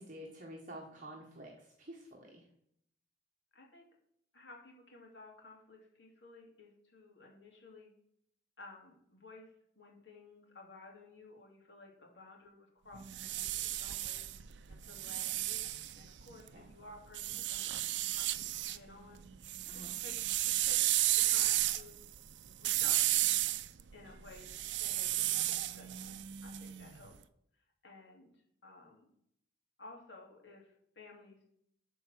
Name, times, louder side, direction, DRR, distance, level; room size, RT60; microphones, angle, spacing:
voice 1, 0.0-2.5 16.5-16.7 19.7-19.9, right 1 dB, 50° right, -1 dB, 1.4 m, -49 dB
voice 2, 3.5-3.8 4.3-7.9 8.6-14.2 14.7-15.6 15.9-19.2 19.7-20.1 20.4-20.8 21.3-22.0 22.6-23.4 23.9-24.5 24.8-26.2 26.4-27.1 27.8-28.3 28.6-29.1 29.8-31.4, left 2 dB, 75° left, 0 dB, 2.9 m, -55 dB
sound 1, 12.9-16.5 17.1-18.8 19.1-27.1, right 14 dB, 85° right, 0.5 m, -33 dB
12.5 x 4.6 x 6.2 m, 0.71 s
head